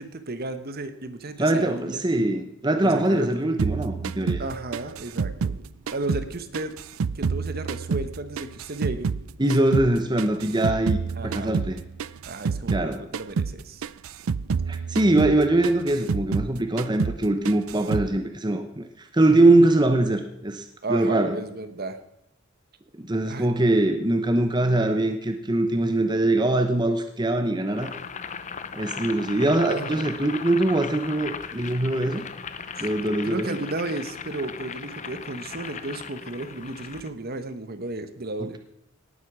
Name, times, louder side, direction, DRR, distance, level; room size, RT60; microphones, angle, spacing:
voice 1, 0.0-2.0 2.8-3.3 4.4-5.6 5.9-6.8 7.1-9.1 11.2-11.5 12.3-13.8 20.8-22.0 23.3-23.5 29.6-30.1 32.8-32.9 33.2-38.6, right 2 dB, 45° right, 10 dB, 1.1 m, -33 dB
voice 2, 1.4-4.4 9.4-11.0 11.2-11.8 12.7-13.0 14.7-20.6 20.9-21.4 22.9-27.9 28.7-32.2 32.8-33.6, right 2 dB, 20° right, 7 dB, 0.8 m, -22 dB
sound 1, 3.6-6.3 6.5-9.2 9.5-12.9 13.1-13.5 13.8-16.5 16.8-17.2 17.4-18.1, right 5 dB, 85° right, 0.5 m, -28 dB
Boiling, 27.7-37.1, left 6 dB, 35° left, 0.7 m, -37 dB
18.0 x 8.1 x 6.1 m, 0.79 s
head